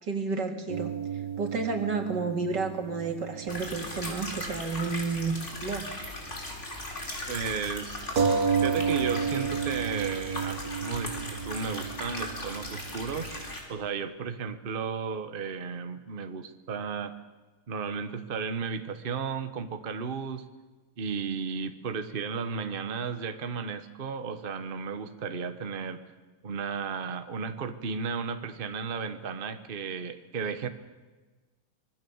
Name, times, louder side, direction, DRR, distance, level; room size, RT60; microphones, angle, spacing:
voice 1, 0.0-0.9 1.4-5.9, right 4 dB, 85° right, 5 dB, 2.9 m, -31 dB
sound 1, 0.7-4.6 4.8-4.9 8.2-13.4, right 5 dB, 60° right, 2.0 m, -32 dB
sound 2, 3.5-13.6, left 1 dB, 40° left, 4.2 m, -38 dB
voice 2, 7.3-8.0 8.6-13.3 13.7-17.1 17.7-20.4 21.0-26.0 26.4-30.7, right 5 dB, 35° right, 9 dB, 1.2 m, -34 dB
25.0 x 20.5 x 7.2 m, 1.3 s
omnidirectional pair, 1.8 m